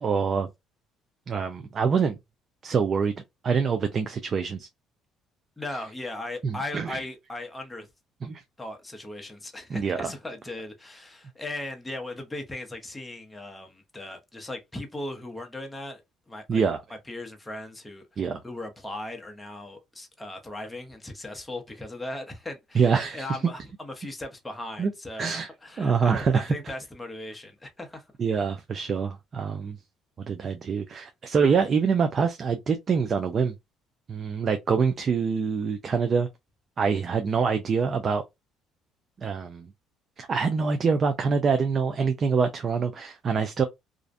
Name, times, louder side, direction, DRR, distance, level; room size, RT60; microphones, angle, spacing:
voice 1, 0.0-0.5 1.3-2.2 2.6-3.1 3.4-4.7 6.4-7.0 8.2-8.4 9.7-10.1 16.5-16.8 18.2-18.4 22.8-23.4 24.8-24.9 25.2-25.5 25.8-26.5 28.2-29.8 30.2-33.5 34.1-36.3 36.8-38.2 39.2-39.7 40.2-43.6, right 5 dB, 40° right, 0.4 m, -25 dB
voice 2, 5.6-7.9 8.6-16.0 16.3-16.7 17.1-28.0, left 1 dB, 15° left, 0.6 m, -38 dB
2.5 x 2.0 x 2.4 m
cardioid pair, 90°, 0 cm